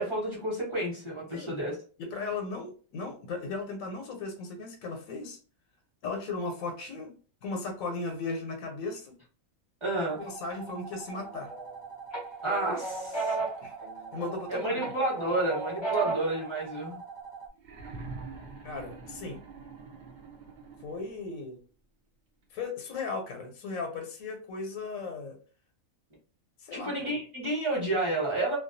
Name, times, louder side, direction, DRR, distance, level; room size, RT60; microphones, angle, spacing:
voice 1, 0.0-1.8 9.8-10.2 12.4-13.4 14.5-17.0 26.7-28.6, right 2 dB, 25° right, -4 dB, 0.8 m, -30 dB
voice 2, 2.0-5.4 6.0-7.1 7.4-9.1 10.2-11.5 13.6-13.7 14.1-14.8 16.0-16.1 18.6-19.4 20.8-21.6 22.5-25.4 26.6-27.2, left 3 dB, 85° left, 4 dB, 1.0 m, -36 dB
sound 1, 10.0-17.5, right 6 dB, 65° right, 0.8 m, -44 dB
sound 2, 11.1-11.7 12.1-14.4 14.8-16.4, right 3 dB, 30° left, 0.6 m, -34 dB
sound 3, 17.6-21.4 22.6-22.7, right 4 dB, 90° right, 0.4 m, -45 dB
2.3 x 2.2 x 2.5 m, 0.39 s
omnidirectional pair, 1.4 m